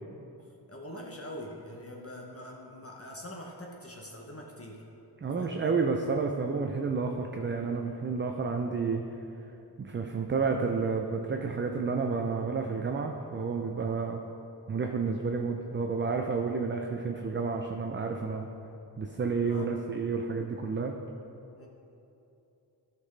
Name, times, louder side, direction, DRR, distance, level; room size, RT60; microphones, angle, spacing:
voice 1, 0.7-4.8 5.4-5.8 10.8-10.9 14.0-14.1 19.4-19.7 21.6-21.7, left 1 dB, 35° left, -1 dB, 0.8 m, -44 dB
voice 2, 5.2-9.0 9.8-14.2 14.7-18.5 19.0-21.0, right 4 dB, 30° right, 3 dB, 0.4 m, -30 dB
12.5 x 5.8 x 3.2 m, 2.9 s
wide cardioid pair, 115°, 40 cm